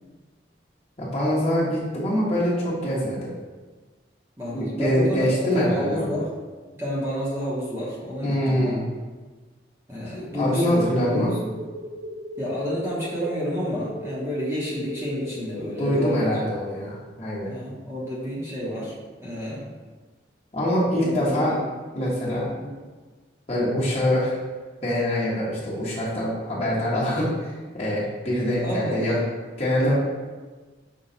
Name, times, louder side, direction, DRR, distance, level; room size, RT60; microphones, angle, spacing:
voice 1, 1.0-3.3 4.5-6.2 8.2-8.8 10.1-11.3 15.8-17.5 20.5-21.5 21.9-22.5 23.5-24.4 24.8-29.2 29.6-29.9, equal, 35° left, -8 dB, 1.3 m, -24 dB
voice 2, 4.4-6.3 6.8-8.7 9.9-11.4 12.4-16.3 17.5-18.9 19.2-19.7 21.0-21.6 22.5-22.7 28.6-29.3 29.8-29.9, equal, 15° right, -8 dB, 0.8 m, -30 dB
sound 1, 10.3-16.7, left 1 dB, 65° left, 0.9 m, -36 dB
5.6 x 2.3 x 3.9 m, 1.3 s
head